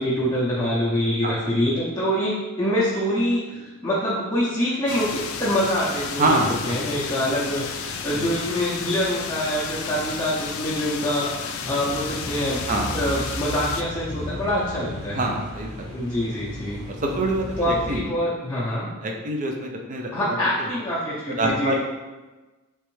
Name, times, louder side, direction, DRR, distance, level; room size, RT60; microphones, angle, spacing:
voice 1, 0.0-3.6 3.8-6.4 6.6-12.6 12.9-15.2 15.9-16.8 17.6-18.9 20.1-21.8, equal, 15° left, -10 dB, 0.6 m, -25 dB
sound 1, 4.9-13.8, left 6 dB, 70° left, 0.3 m, -33 dB
voice 2, 6.2-6.8 8.1-8.3 12.7-13.0 15.1-15.9 16.9-18.0 19.0-20.3 20.6-20.7 21.4-21.8, right 2 dB, 35° right, 1 dB, 0.5 m, -25 dB
sound 2, 11.6-18.0, left 1 dB, 15° right, 0.9 m, -35 dB
3.3 x 3.1 x 3.1 m, 1.2 s
head